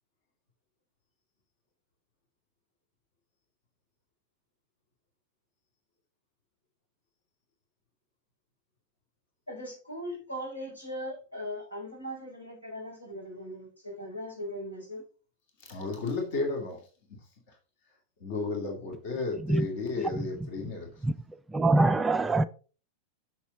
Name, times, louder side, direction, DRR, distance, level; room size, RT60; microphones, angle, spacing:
voice 1, 9.5-15.0, equal, 80° left, 4.5 m, -39 dB
voice 2, 15.6-16.8 18.2-20.9, left 3 dB, 50° left, 2.3 m, -33 dB
voice 3, 20.1-20.7 21.0-22.4, right 2 dB, 15° right, 0.4 m, -26 dB
7.2 x 6.4 x 4.0 m
figure-of-eight pair, 90°, 0 cm